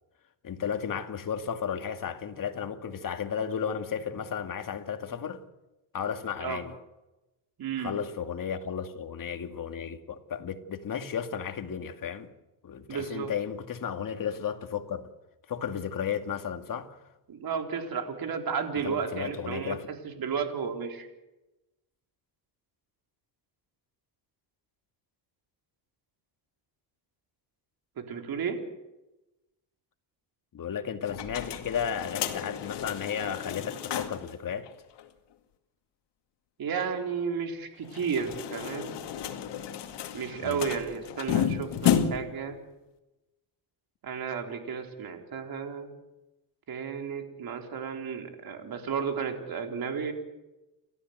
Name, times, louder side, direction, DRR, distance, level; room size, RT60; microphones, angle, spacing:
voice 1, 0.4-5.4 5.9-6.7 7.8-12.3 12.6-15.1 15.5-17.0 18.8-19.9 30.5-34.7 40.4-40.6, left 7 dB, 50° left, 2.4 m, -34 dB
voice 2, 7.6-7.9 12.9-13.3 17.3-21.1 28.1-28.6 36.6-38.9 40.1-42.6 44.0-45.9 46.7-50.1, right 6 dB, 55° right, 4.0 m, -33 dB
Door sliding along a metal track, 31.1-34.3 34.6-34.7 35.0-35.1 37.8-42.4, left 9 dB, 70° left, 2.4 m, -32 dB
30.0 x 14.0 x 8.1 m
cardioid pair, 95°, 43 cm